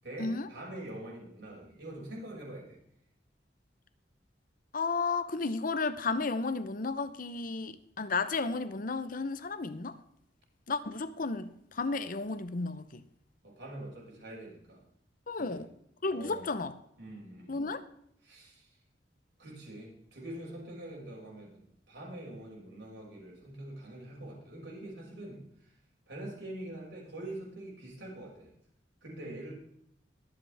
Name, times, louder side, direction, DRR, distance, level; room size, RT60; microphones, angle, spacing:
voice 1, 0.0-2.8 13.4-14.8 15.4-15.6 16.1-16.5 17.0-17.7 18.2-18.8 19.4-25.8 26.1-28.5 29.0-29.5, right 1 dB, 75° right, 6.0 m, -44 dB
voice 2, 4.7-10.0 10.7-13.0 15.3-15.7 16.0-16.7 17.5-17.8, left 3 dB, 50° left, 0.8 m, -33 dB
22.5 x 7.8 x 3.5 m
head